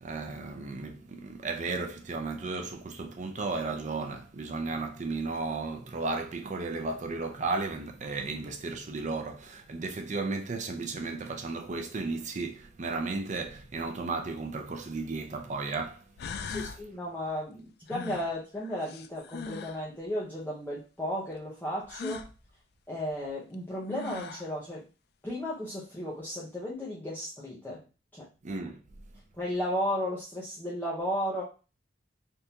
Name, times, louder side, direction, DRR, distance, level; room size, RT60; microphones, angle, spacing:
voice 1, 0.0-16.0 16.5-16.6 28.4-28.8, right 3 dB, 40° right, 0.5 m, -34 dB
sound 1, 14.7-14.8 15.7-15.8 16.2-16.8 17.9-19.8 21.9-22.3 23.5-23.6 23.9-24.5, left 5 dB, 60° left, 0.3 m, -40 dB
voice 2, 16.5-22.3 22.9-24.9 25.2-27.8 28.1-28.3 29.4-31.4, equal, 10° left, 0.7 m, -34 dB
3.5 x 2.6 x 2.8 m
head